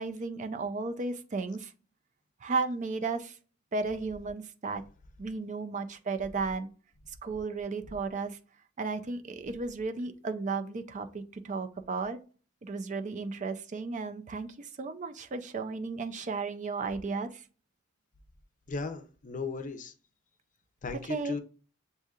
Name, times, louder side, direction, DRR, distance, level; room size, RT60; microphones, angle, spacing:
voice 1, 0.0-1.7 2.4-3.3 3.7-4.8 5.2-6.7 7.2-8.4 8.8-12.2 12.6-17.4 21.1-21.4, right 4 dB, 40° right, 0.4 m, -34 dB
voice 2, 18.7-19.9 20.8-21.4, left 4 dB, 40° left, 0.5 m, -36 dB
7.7 x 2.7 x 2.4 m
head